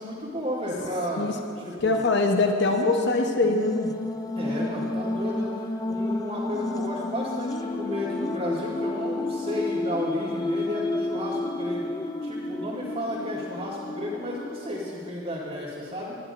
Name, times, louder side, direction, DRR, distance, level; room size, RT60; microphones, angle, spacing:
voice 1, 0.0-1.3 1.6-2.0 4.4-5.5 5.9-11.8 12.2-16.2, left 1 dB, 35° right, -10 dB, 2.3 m, -32 dB
sound 1, 0.6-1.2 1.6-1.7 2.7-15.1, left 2 dB, 20° left, 0.3 m, -31 dB
voice 2, 1.8-3.9, left 3 dB, 55° left, 3 dB, 0.9 m, -23 dB
21.0 x 12.0 x 2.6 m, 2.8 s
head